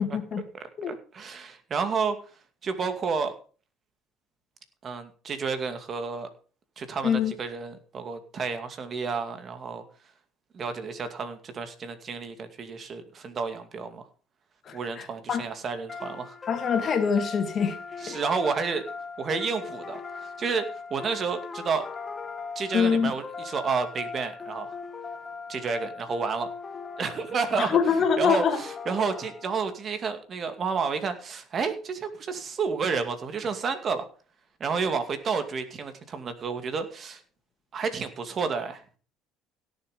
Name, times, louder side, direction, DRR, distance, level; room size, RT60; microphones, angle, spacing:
voice 1, 0.0-0.4 0.8-1.0 7.0-7.3 14.7-15.5 16.5-17.8 18.1-18.2 22.7-23.1 27.6-28.6, left 6 dB, 45° left, 2.4 m, -25 dB
voice 2, 0.5-2.2 2.6-3.3 4.8-6.3 6.8-9.8 10.5-14.0 14.7-16.4 18.0-18.8 19.2-20.7 20.9-21.9 22.6-24.7 25.5-26.5 27.0-27.8 28.2-34.0 34.6-37.2 37.7-38.8, right 5 dB, 45° right, 2.4 m, -30 dB
sound 1, 15.9-29.7, left 5 dB, 30° left, 1.6 m, -39 dB
17.0 x 7.2 x 5.2 m
supercardioid pair, 85°, 0 cm